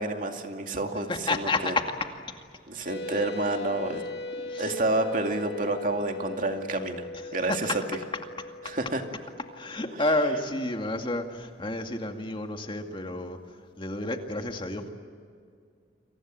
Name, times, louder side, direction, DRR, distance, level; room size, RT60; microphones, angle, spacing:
voice 1, 0.0-1.7 2.7-4.0 4.6-7.0 7.3-7.7 8.6-9.0, right 2 dB, 50° right, 4 dB, 2.4 m, -29 dB
voice 2, 1.1-2.1 4.5-4.7 7.1-7.8 9.5-13.4 13.8-14.9, left 2 dB, 30° left, 4 dB, 2.2 m, -30 dB
sound 1, 2.9-10.9, left 2 dB, 85° left, 5.2 m, -39 dB
29.5 x 24.5 x 7.7 m, 2.2 s
head